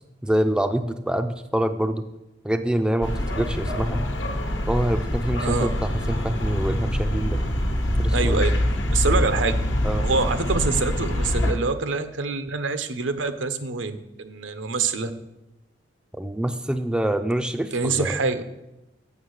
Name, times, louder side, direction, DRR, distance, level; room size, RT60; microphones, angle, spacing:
voice 1, 0.2-2.0 2.4-4.0 4.7-7.4 8.0-8.4 9.8-10.0 16.2-18.2, right 1 dB, 5° right, 7 dB, 0.3 m, -25 dB
sound 1, 3.0-11.5, left 1 dB, 75° left, 1.1 m, -25 dB
voice 2, 8.1-8.5 8.9-9.5 10.0-15.1 17.7-18.4, right 4 dB, 85° right, 10 dB, 0.7 m, -25 dB
7.3 x 6.9 x 6.4 m, 0.96 s
head